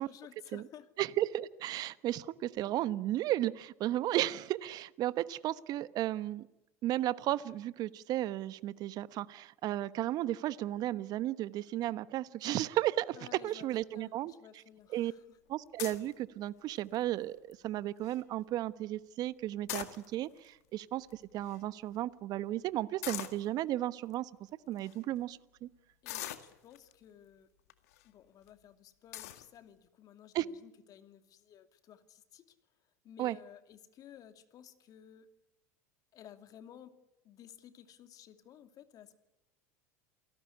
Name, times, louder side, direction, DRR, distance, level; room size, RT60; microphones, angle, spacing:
voice 1, 0.0-0.9 13.1-15.4 26.0-27.5 28.0-32.6 33.0-35.3 36.1-36.9 37.2-39.1, left 10 dB, 45° left, 9 dB, 2.6 m, -55 dB
voice 2, 1.0-6.5 6.8-13.2 13.4-14.3 14.9-15.1 15.5-24.3 24.7-25.7 30.3-30.4 33.2-33.4, right 14 dB, 50° right, 16 dB, 1.1 m, -34 dB
sound 1, 15.8-16.1 16.8-17.1 17.5-17.6 17.8-18.2 19.5-20.4 21.1-21.2 21.4-21.6 23.0-23.4 24.1-24.2 24.8-25.0 26.1-26.9 27.7-28.0 28.5-28.6 29.1-29.5, left 15 dB, 75° left, 2.0 m, -41 dB
28.0 x 18.5 x 9.9 m, 0.97 s
hypercardioid pair, 80°, 8 cm